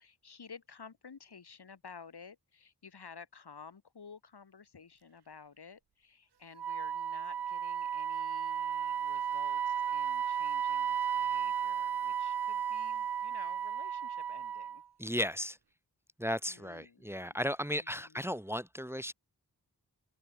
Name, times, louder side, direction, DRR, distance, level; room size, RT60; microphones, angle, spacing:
voice 1, 0.0-14.8 16.5-17.2 17.7-18.2, left 5 dB, 85° left, 3.9 m, -53 dB
Wind instrument woodwind instrument, 6.6-14.8, right 8 dB, 85° right, 1.0 m, -34 dB
voice 2, 15.0-15.6 16.2-19.1, equal, 5° right, 1.2 m, -35 dB
open air
cardioid pair, 45°, 38 cm